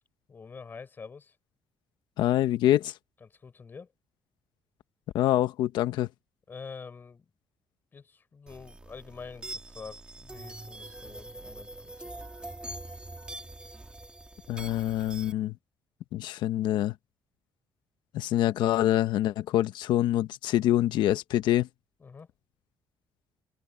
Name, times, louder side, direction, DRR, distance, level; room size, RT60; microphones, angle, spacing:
voice 1, 0.3-1.4 3.2-3.9 6.5-7.3 7.9-12.0 22.0-22.3, left 5 dB, 25° left, 4.2 m, -46 dB
voice 2, 2.2-2.9 5.1-6.1 14.5-15.5 16.1-16.9 18.1-21.7, left 13 dB, 85° left, 1.2 m, -25 dB
sound 1, 8.5-15.3, right 2 dB, 15° right, 2.6 m, -43 dB
open air
cardioid pair, 155°, 8 cm